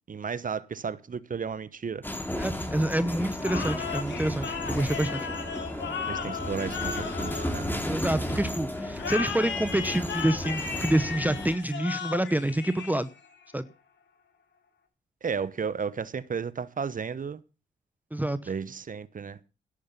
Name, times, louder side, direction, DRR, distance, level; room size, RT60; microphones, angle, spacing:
voice 1, 0.1-2.0 6.1-7.7 15.2-17.4 18.5-19.4, right 6 dB, 40° right, 1.1 m, -33 dB
sound 1, 2.0-11.6, equal, 10° left, 2.8 m, -34 dB
voice 2, 2.4-5.3 7.9-13.1 13.5-13.7 18.1-18.4, right 1 dB, 10° right, 0.8 m, -27 dB
sound 2, 3.4-8.2 9.0-13.4, left 6 dB, 65° left, 2.5 m, -36 dB
11.5 x 8.5 x 6.8 m
supercardioid pair, 50°, 20 cm